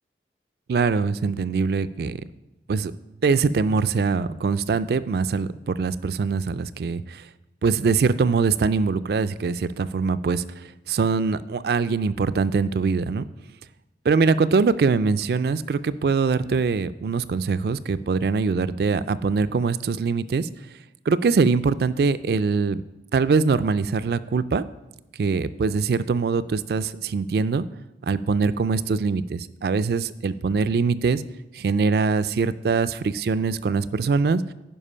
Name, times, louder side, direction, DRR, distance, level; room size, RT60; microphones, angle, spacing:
voice 1, 0.7-2.2 2.7-2.9 3.2-7.2 7.6-10.4 10.9-13.3 14.1-20.5 21.1-22.8 23.1-24.6 25.2-27.6 28.0-31.2 31.5-34.4, right 4 dB, 60° right, 15 dB, 0.3 m, -23 dB
10.0 x 5.2 x 5.5 m, 0.98 s
head